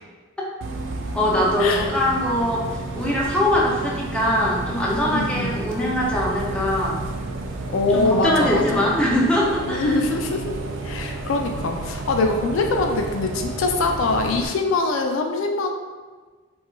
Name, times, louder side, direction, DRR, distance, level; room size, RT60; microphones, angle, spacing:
Bus, 0.6-14.5, right 2 dB, 65° right, 0.4 m, -31 dB
voice 1, 1.1-2.6 3.0-7.0 7.9-10.0, left 1 dB, 5° left, -5 dB, 0.5 m, -22 dB
voice 2, 5.1-5.6 7.7-8.9 9.7-15.7, left 3 dB, 75° left, 3 dB, 0.4 m, -23 dB
4.6 x 2.3 x 2.3 m, 1.4 s
head